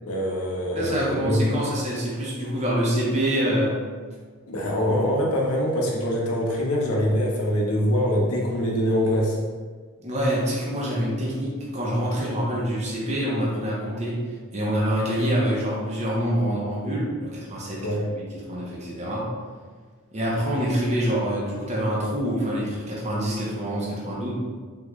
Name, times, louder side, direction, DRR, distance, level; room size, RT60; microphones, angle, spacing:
voice 1, 0.0-1.5 4.5-9.4 17.8-18.1, equal, 75° left, -1 dB, 0.7 m, -24 dB
voice 2, 0.8-3.7 10.0-17.8 18.1-19.3 20.1-24.3, equal, 30° right, -5 dB, 0.7 m, -26 dB
3.6 x 2.3 x 3.0 m, 1.6 s
head